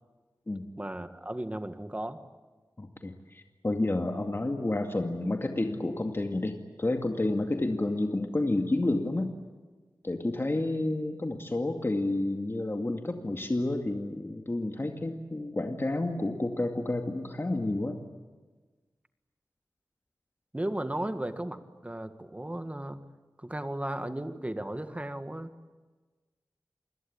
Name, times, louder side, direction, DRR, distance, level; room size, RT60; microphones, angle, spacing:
voice 1, 0.8-2.2 20.5-21.6 21.8-23.0 23.4-25.5, right 1 dB, 20° right, 9 dB, 1.9 m, -35 dB
voice 2, 2.8-9.3 10.0-18.0, left 2 dB, 35° left, 4 dB, 2.2 m, -30 dB
28.5 x 21.0 x 8.8 m, 1.3 s
wide cardioid pair, 65°, 7 cm